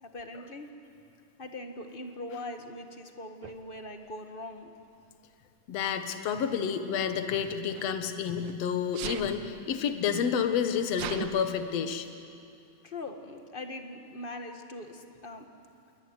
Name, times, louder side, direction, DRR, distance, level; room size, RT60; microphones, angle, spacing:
voice 1, 0.0-0.8 1.4-4.7 12.8-15.5, left 2 dB, 25° left, 5 dB, 1.3 m, -41 dB
Sneeze, 3.4-3.6 4.7-5.0 7.1-8.6 8.9-9.3 10.0-10.1 10.4-11.3, right 10 dB, 75° right, 2.4 m, -40 dB
voice 2, 5.7-12.1, left 7 dB, 60° left, 8 dB, 2.4 m, -29 dB
27.5 x 22.0 x 9.8 m, 2.5 s
omnidirectional pair, 3.4 m